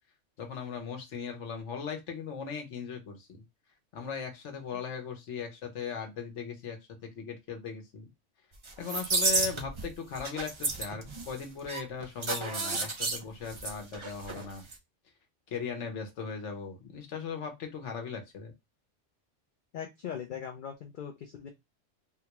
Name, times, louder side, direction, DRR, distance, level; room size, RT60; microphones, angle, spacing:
voice 1, 0.4-3.4 3.9-6.8 7.0-8.0 8.8-14.6 15.5-18.5, left 6 dB, 75° left, 3 dB, 1.2 m, -38 dB
sound 1, 8.6-9.9 10.2-14.5 14.7-14.8, right 3 dB, 35° right, 0.5 m, -31 dB
voice 2, 19.7-21.5, left 8 dB, 55° left, 4 dB, 0.6 m, -40 dB
3.6 x 2.3 x 2.9 m, 0.21 s
omnidirectional pair, 1.2 m